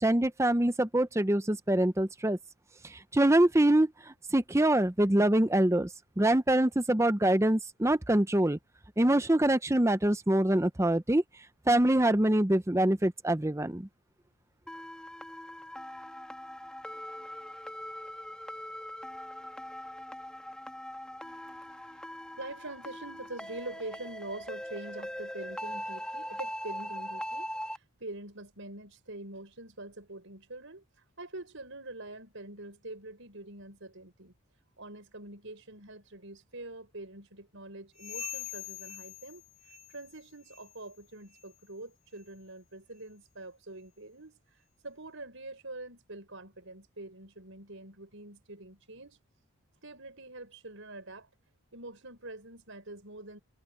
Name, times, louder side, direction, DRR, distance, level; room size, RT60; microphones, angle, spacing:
voice 1, 0.0-2.4 2.8-5.9 6.2-8.6 9.0-11.2 11.7-13.9, right 1 dB, 10° right, 0.6 m, -25 dB
sound 1, 14.7-27.8, equal, 5° left, 1.5 m, -41 dB
voice 2, 22.4-34.3 34.8-49.2 49.8-51.3 51.7-53.4, right 2 dB, 60° right, 6.4 m, -45 dB
sound 2, 37.9-40.2 40.4-40.8 41.3-41.5 42.1-42.3 43.0-43.1 43.8-43.9, left 9 dB, 60° left, 4.9 m, -44 dB
head